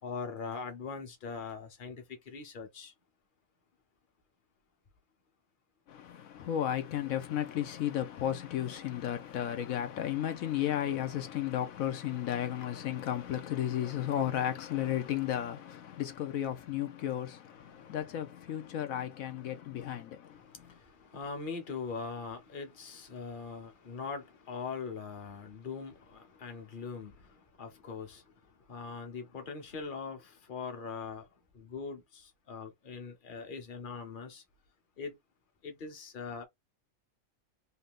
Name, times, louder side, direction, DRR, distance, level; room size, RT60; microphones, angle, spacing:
voice 1, 0.0-2.9 17.6-18.1 18.5-18.7 19.5-20.0 20.3-34.4 35.0-35.2 35.6-36.5, left 5 dB, 40° left, 1.1 m, -42 dB
voice 2, 5.9-20.8, left 11 dB, 85° left, 1.2 m, -34 dB
3.4 x 2.7 x 3.6 m
omnidirectional pair, 1.4 m